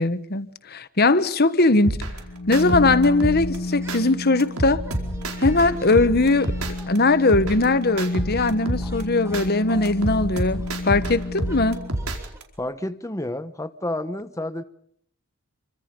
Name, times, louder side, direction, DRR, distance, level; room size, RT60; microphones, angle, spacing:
voice 1, 0.0-2.0 2.5-4.8 5.4-6.5 6.9-11.8, left 2 dB, 45° left, 1.3 m, -20 dB
sound 1, 1.8-4.0 4.4-7.0 7.3-9.4 9.8-12.4, right 1 dB, 85° right, 4.7 m, -29 dB
sound 2, 2.1-12.0, left 2 dB, 70° left, 1.6 m, -32 dB
sound 3, 3.6-4.1 4.4-12.4, right 1 dB, 15° right, 3.2 m, -45 dB
voice 2, 12.6-14.6, left 1 dB, 15° left, 1.0 m, -30 dB
28.5 x 25.0 x 5.4 m
head